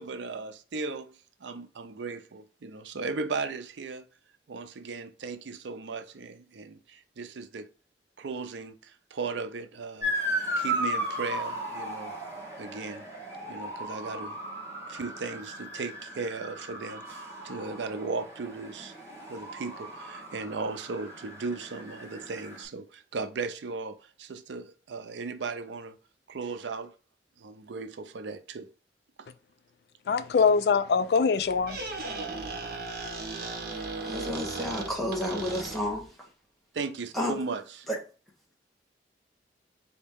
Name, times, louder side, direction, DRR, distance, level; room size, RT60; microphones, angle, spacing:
voice 1, 0.0-4.1 4.5-7.7 8.2-10.1 10.6-12.1 12.6-13.1 13.5-14.4 14.9-19.0 19.3-26.0 26.3-26.9 27.4-28.7 29.2-29.3 36.7-37.9, right 4 dB, 85° right, 0.5 m, -37 dB
Motor vehicle (road) / Siren, 10.0-22.6, right 1 dB, 15° right, 1.5 m, -36 dB
voice 2, 30.1-32.1, left 5 dB, 60° left, 0.3 m, -24 dB
Squeak, 31.4-36.1, right 3 dB, 55° right, 0.9 m, -36 dB
voice 3, 33.7-36.0 37.1-37.4, left 1 dB, ahead, 1.1 m, -31 dB
4.2 x 2.8 x 3.5 m
head